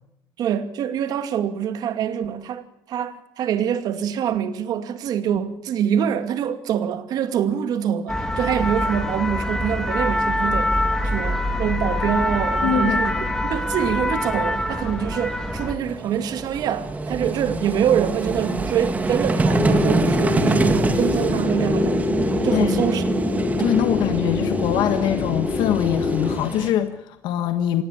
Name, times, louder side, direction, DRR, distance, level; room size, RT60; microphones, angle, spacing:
voice 1, 0.4-22.2 22.4-23.0, right 9 dB, 60° right, 2.3 m, -25 dB
sound 1, 8.1-15.7, left 1 dB, 5° left, 2.0 m, -24 dB
Vehicle, 10.6-10.7 10.9-11.1 13.1-13.2 13.3-26.7, right 3 dB, 20° right, 2.0 m, -26 dB
voice 2, 12.6-13.0 22.5-22.9 23.5-27.8, left 10 dB, 85° left, 1.5 m, -23 dB
sound 2, 19.5-26.4, left 4 dB, 25° left, 3.9 m, -25 dB
25.5 x 18.0 x 8.7 m
cardioid pair, 155°, 8 cm